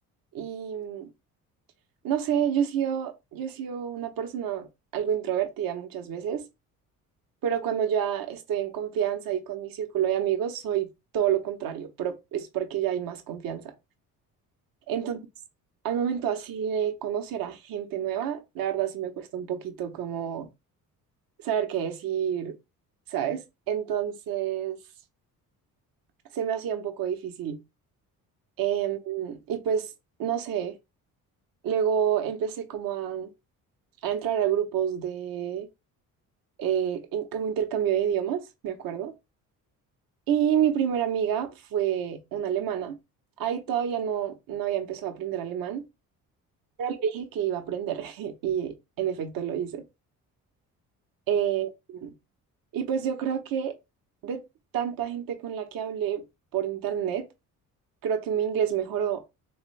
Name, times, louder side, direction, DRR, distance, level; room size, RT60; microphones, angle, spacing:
voice 1, 0.3-1.1 2.0-4.7 4.9-6.4 7.4-13.7 14.9-15.2 15.8-20.5 21.4-22.5 23.1-23.4 23.7-24.8 26.3-27.6 28.6-29.9 30.2-30.7 31.6-33.3 34.0-35.7 36.6-39.1 40.3-43.0 43.4-45.8 46.8-49.8 51.3-52.1 52.7-53.7 54.2-54.4 54.7-56.2 56.5-57.3 58.0-59.2, right 9 dB, 65° right, 1.0 m, -28 dB
3.3 x 3.2 x 3.2 m
supercardioid pair, 75°, 36 cm